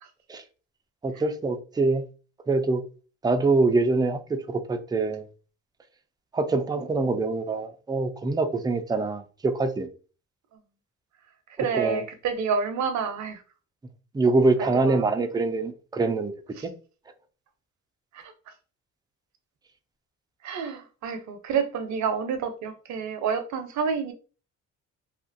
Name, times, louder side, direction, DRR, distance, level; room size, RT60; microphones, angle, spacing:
voice 1, 1.0-2.1 2.5-2.8 3.2-5.2 6.3-9.9 11.7-12.0 14.1-16.3 16.6-16.7, right 3 dB, 15° right, 0.4 m, -24 dB
voice 2, 11.6-13.4 14.6-15.1 16.6-16.7 18.1-18.3 20.4-24.1, right 6 dB, 70° right, 0.6 m, -29 dB
2.7 x 2.5 x 2.5 m
cardioid pair, 90°, 30 cm